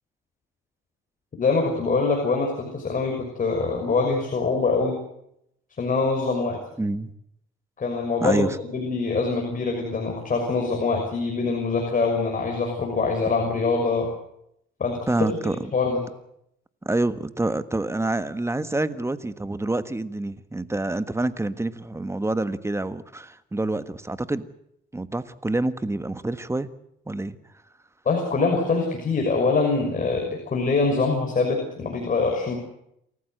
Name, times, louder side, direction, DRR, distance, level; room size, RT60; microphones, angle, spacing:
voice 1, 1.4-5.0 5.8-6.6 7.8-14.1 14.8-15.4 15.7-16.0 28.0-32.6, left 4 dB, 40° left, 2 dB, 6.0 m, -24 dB
voice 2, 6.8-7.1 8.2-8.6 15.1-15.6 16.8-24.5 24.9-26.7 27.1-27.4, right 2 dB, 15° right, 12 dB, 1.4 m, -27 dB
28.5 x 15.0 x 8.0 m, 0.76 s
cardioid pair, 90°, 20 cm